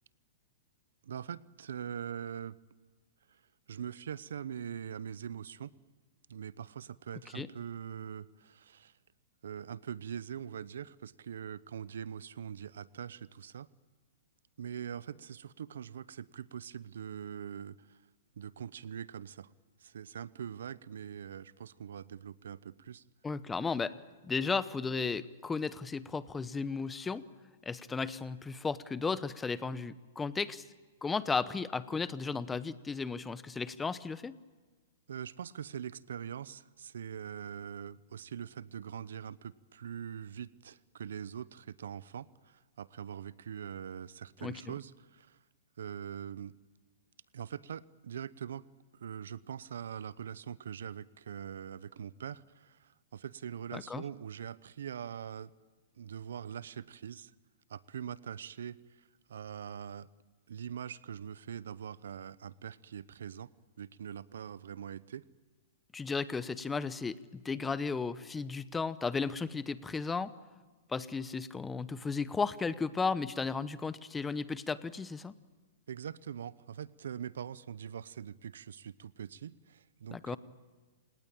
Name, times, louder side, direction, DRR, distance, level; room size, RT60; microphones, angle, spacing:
voice 1, 1.0-2.6 3.3-3.4 3.7-5.7 6.3-8.9 9.4-13.7 14.6-18.0 18.4-19.5 19.8-23.0 35.1-45.4 45.8-46.6 47.3-48.6 48.9-55.5 56.0-57.3 57.7-58.8 59.3-60.1 60.5-63.5 63.8-65.2 75.9-80.4, right 8 dB, 75° right, 19 dB, 0.8 m, -43 dB
voice 2, 23.2-24.0 24.2-27.2 27.7-30.6 31.0-34.4 44.4-44.7 53.7-54.0 65.9-70.3 70.9-75.3 80.1-80.4, left 4 dB, 10° left, 16 dB, 0.9 m, -34 dB
28.0 x 18.5 x 8.8 m, 1.3 s
hypercardioid pair, 135°, 0 cm